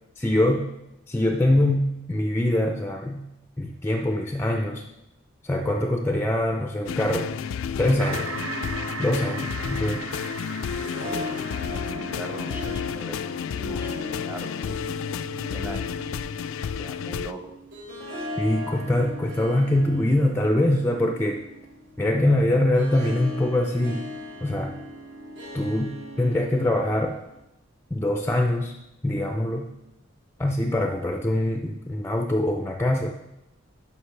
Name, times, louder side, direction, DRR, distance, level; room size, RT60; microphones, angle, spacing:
voice 1, 0.2-0.7 1.1-3.3 3.6-4.8 5.4-7.3 7.8-8.3 9.0-10.0 18.4-21.4 22.0-24.1 24.4-24.8 25.5-27.2 27.9-28.7 29.0-29.7 30.4-33.1, left 1 dB, 10° left, 3 dB, 0.4 m, -23 dB
sound 1, 6.9-17.3, left 7 dB, 80° left, 0.3 m, -31 dB
Harp, 7.8-27.4, left 1 dB, 65° right, 1.6 m, -39 dB
sound 2, 8.0-13.7, right 4 dB, 85° right, 0.8 m, -38 dB
voice 2, 10.9-13.2 13.5-14.8 15.5-16.1 16.4-17.5, right 1 dB, 10° right, 4 dB, 0.8 m, -41 dB
11.5 x 5.5 x 3.3 m, 0.90 s
head